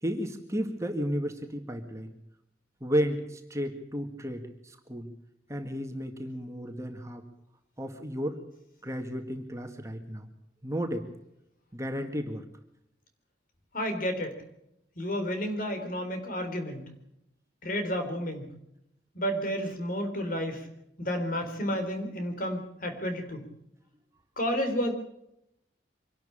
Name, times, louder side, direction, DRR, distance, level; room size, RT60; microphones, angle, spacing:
voice 1, 0.0-2.1 2.8-5.1 5.5-7.2 7.8-8.4 8.8-10.3 10.6-11.1 11.7-12.5, equal, 15° right, 5 dB, 2.0 m, -33 dB
voice 2, 13.7-14.3 15.0-16.8 17.6-18.5 19.2-20.6 21.0-23.5 24.4-24.9, equal, 50° left, 7 dB, 3.8 m, -31 dB
25.5 x 12.0 x 8.8 m, 0.81 s
head